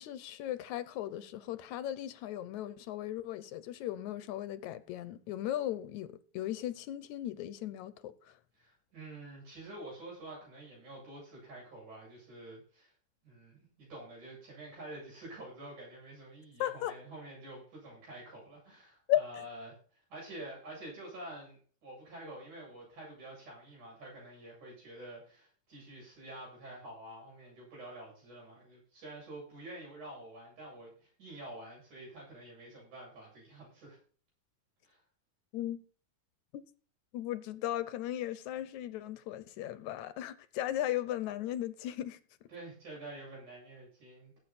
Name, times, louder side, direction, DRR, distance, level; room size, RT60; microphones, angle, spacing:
voice 1, 0.0-8.4 16.6-17.0 19.1-19.2 35.5-35.8 36.5-36.6 37.1-42.2, left 12 dB, 75° left, 2.0 m, -36 dB
voice 2, 8.6-12.9 13.2-19.8 20.1-34.0 34.8-35.0 42.5-44.4, right 1 dB, 75° right, 9.7 m, -48 dB
17.0 x 8.3 x 4.2 m
omnidirectional pair, 3.5 m